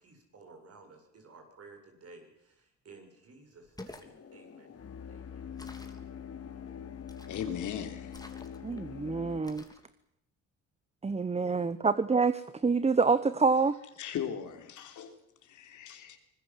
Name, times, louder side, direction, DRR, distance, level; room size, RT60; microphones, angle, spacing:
voice 1, 0.0-6.0, right 3 dB, 55° right, 4 dB, 7.4 m, -55 dB
sound 1, 3.6-4.1 5.6-6.1 7.1-7.6 8.1-8.8 9.4-9.8, left 2 dB, 10° left, 3.1 m, -49 dB
sound 2, 4.0-9.4, left 8 dB, 55° left, 2.9 m, -44 dB
voice 2, 7.3-8.2 14.0-16.2, left 9 dB, 75° left, 6 dB, 3.6 m, -38 dB
voice 3, 8.6-9.6 11.0-12.3 12.6-13.8, right 4 dB, 20° right, 15 dB, 0.9 m, -26 dB
25.0 x 20.5 x 7.6 m, 0.76 s
cardioid pair, 90°, 30 cm